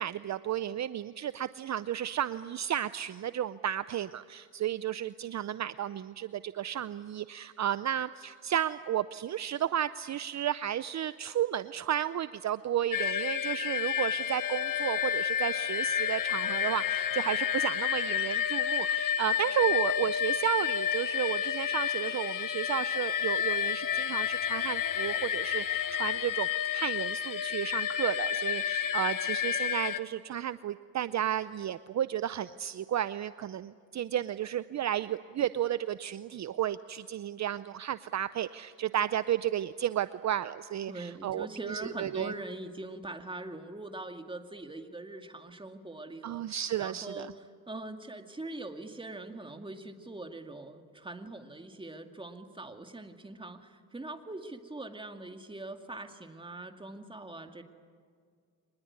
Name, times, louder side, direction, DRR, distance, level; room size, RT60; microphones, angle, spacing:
voice 1, 0.0-42.3 46.2-47.3, right 11 dB, 50° right, 14 dB, 0.6 m, -33 dB
sound 1, 12.9-30.0, left 9 dB, 65° left, 1.4 m, -30 dB
voice 2, 40.9-57.6, right 2 dB, 15° right, 6 dB, 2.2 m, -42 dB
25.0 x 20.5 x 9.6 m, 2.1 s
cardioid pair, 90°, 35 cm